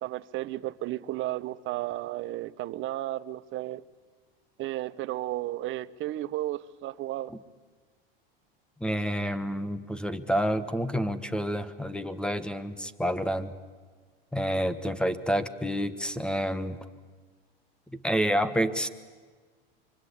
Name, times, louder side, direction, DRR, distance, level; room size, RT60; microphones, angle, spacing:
voice 1, 0.0-3.8 4.6-7.3, right 15 dB, 40° right, 17 dB, 0.9 m, -33 dB
voice 2, 8.8-13.5 14.3-16.8 17.9-18.9, equal, 5° left, 13 dB, 1.4 m, -29 dB
25.5 x 24.5 x 8.6 m, 1.5 s
hypercardioid pair, 105°, 29 cm